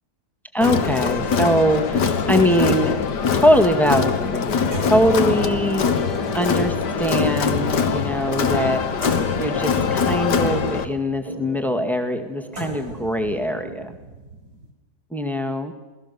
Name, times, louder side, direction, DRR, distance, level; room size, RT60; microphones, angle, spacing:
voice 1, 0.5-3.0 3.3-5.9 6.3-8.8 9.4-13.9 15.1-15.7, equal, ahead, 6 dB, 1.8 m, -22 dB
Crowd, 0.6-10.8, left 6 dB, 80° left, 1.9 m, -23 dB
sound 1, 0.6-3.8 4.2-4.3 4.7-8.7 9.0-14.7, right 2 dB, 65° right, 4.8 m, -39 dB
sound 2, 2.3-14.0, right 3 dB, 20° right, 2.4 m, -36 dB
28.0 x 18.0 x 7.0 m, 1.2 s
omnidirectional pair, 1.8 m